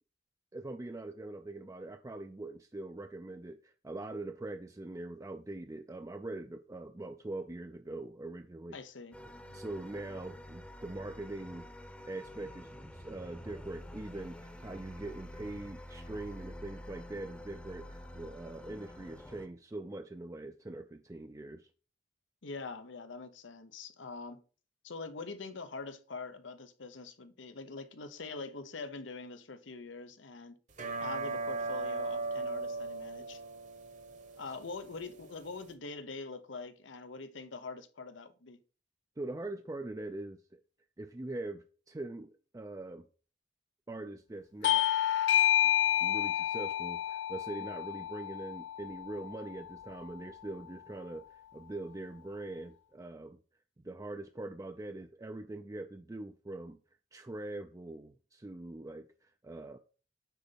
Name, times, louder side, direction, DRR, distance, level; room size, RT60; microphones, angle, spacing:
voice 1, 0.5-8.8 9.5-11.7 12.0-21.7 39.2-40.6 41.0-43.1 43.9-44.9 46.0-53.4 53.8-56.8 57.1-59.8, right 2 dB, 20° right, 0.4 m, -43 dB
voice 2, 8.7-9.2 22.4-24.4 24.8-30.6 31.0-33.4 34.4-38.6, left 4 dB, 85° left, 0.9 m, -44 dB
sound 1, 9.1-19.5, left 1 dB, 5° left, 0.8 m, -48 dB
sound 2, 30.7-35.7, right 3 dB, 40° right, 1.1 m, -38 dB
Bell / Doorbell, 44.6-49.7, left 11 dB, 70° left, 0.4 m, -30 dB
9.2 x 4.0 x 5.2 m
head